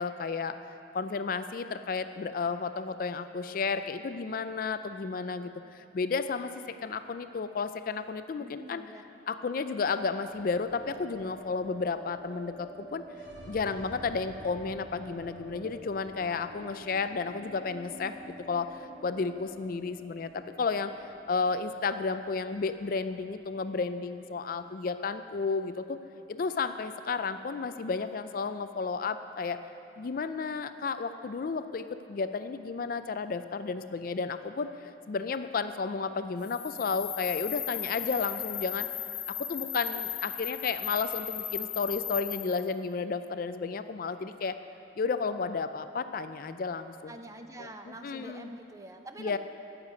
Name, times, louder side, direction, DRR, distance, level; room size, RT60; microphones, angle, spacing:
voice 1, 0.0-8.8 9.3-13.0 13.5-18.1 18.5-20.9 21.3-26.0 26.3-29.6 30.0-38.9 39.3-44.6 45.0-47.2 47.6-48.5 49.2-49.4, left 4 dB, 50° left, 11 dB, 0.4 m, -32 dB
voice 2, 8.4-9.0 47.1-49.4, right 1 dB, 15° right, 6 dB, 0.6 m, -45 dB
sound 1, 10.2-26.4 26.6-26.7 27.0-27.7, right 1 dB, 85° right, 2.6 m, -49 dB
sound 2, 36.4-42.7, left 12 dB, 65° left, 0.8 m, -36 dB
10.0 x 7.4 x 9.3 m, 2.7 s
head